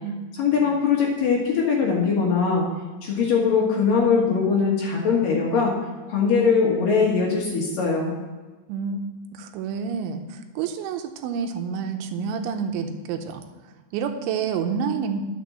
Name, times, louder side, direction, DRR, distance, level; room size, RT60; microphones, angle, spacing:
voice 1, 0.4-2.6 3.0-5.7 6.1-8.1, left 5 dB, 60° left, -2 dB, 2.7 m, -21 dB
voice 2, 8.7-9.0 9.3-13.4 13.9-15.2, right 6 dB, 80° right, 6 dB, 3.2 m, -28 dB
11.0 x 6.9 x 7.4 m, 1.3 s
omnidirectional pair, 5.4 m